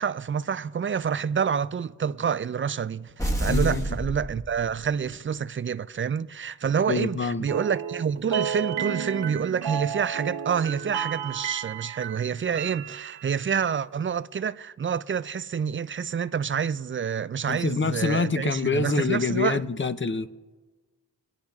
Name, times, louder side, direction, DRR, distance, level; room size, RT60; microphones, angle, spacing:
voice 1, 0.0-19.6, right 7 dB, 30° right, 0.4 m, -28 dB
sound 1, 3.2-5.1, right 1 dB, 10° left, 1.3 m, -29 dB
voice 2, 3.5-3.9 6.9-7.5 17.5-20.3, left 4 dB, 30° left, 0.7 m, -26 dB
sound 2, 7.5-13.5, right 8 dB, 80° right, 0.9 m, -32 dB
27.0 x 10.0 x 2.4 m
cardioid pair, 45°, 40 cm